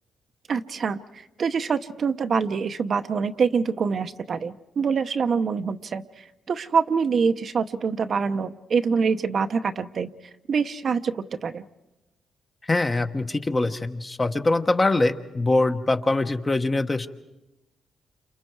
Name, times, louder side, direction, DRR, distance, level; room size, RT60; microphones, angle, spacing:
voice 1, 0.5-10.1 10.5-11.6, right 5 dB, 50° right, 9 dB, 0.8 m, -25 dB
voice 2, 12.7-17.1, left 2 dB, 25° left, 7 dB, 1.2 m, -23 dB
30.0 x 27.5 x 4.7 m, 1.0 s
cardioid pair, 95°, 0 cm